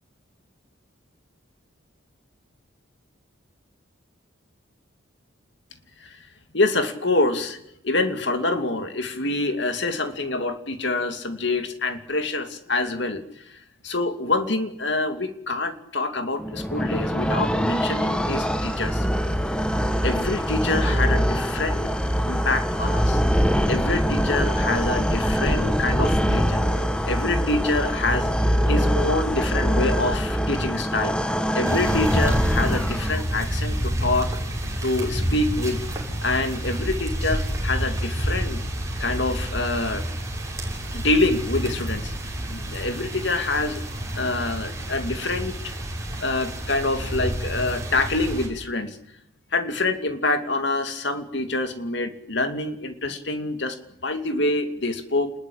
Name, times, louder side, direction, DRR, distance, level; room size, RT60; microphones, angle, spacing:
voice 1, 6.5-7.6 7.8-19.1 19.5-19.6 20.0-21.9 22.3-23.2 23.7-26.6 27.1-28.3 28.7-31.2 31.5-34.4 34.8-35.8 36.2-38.6 39.0-40.0 40.9-42.1 42.5-43.8 44.1-45.7 46.2-49.0 49.5-53.8 54.0-55.3, left 2 dB, 60° left, 7 dB, 2.7 m, -26 dB
sound 1, 16.4-33.4, equal, 5° left, 1.5 m, -23 dB
sound 2, 31.7-48.5, equal, 15° right, 6.6 m, -28 dB
29.0 x 20.5 x 8.8 m, 0.78 s
head